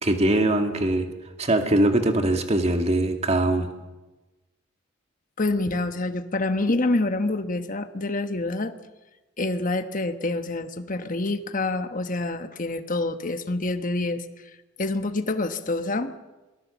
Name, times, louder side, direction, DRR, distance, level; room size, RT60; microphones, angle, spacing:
voice 1, 0.0-1.1 1.4-3.7, right 1 dB, 35° right, 5 dB, 2.1 m, -22 dB
voice 2, 5.4-8.7 9.4-14.2 14.8-16.1, left 2 dB, 45° left, 9 dB, 1.2 m, -27 dB
26.5 x 19.5 x 7.2 m, 1.1 s
head